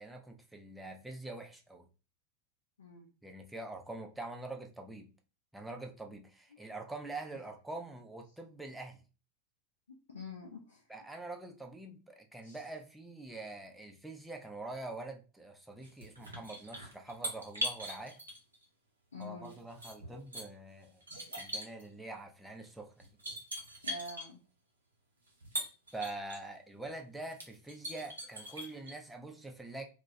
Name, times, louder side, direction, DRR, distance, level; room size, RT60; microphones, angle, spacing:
voice 1, 0.0-1.9 3.2-5.1 5.5-9.0 10.9-18.2 19.2-21.0 21.4-23.1 25.9-29.9, right 2 dB, 5° right, 0.4 m, -45 dB
voice 2, 2.8-3.1 10.1-10.9 12.4-12.6 19.1-19.6 23.8-24.4, left 2 dB, 70° left, 0.4 m, -46 dB
sound 1, 15.8-18.6 19.2-20.4 21.0-21.9 22.6-22.7 23.0-24.3 25.3-26.4 26.9-27.0 27.3-28.9, right 1 dB, 75° right, 0.7 m, -40 dB
2.2 x 2.1 x 2.6 m
figure-of-eight pair, 90°, 0 cm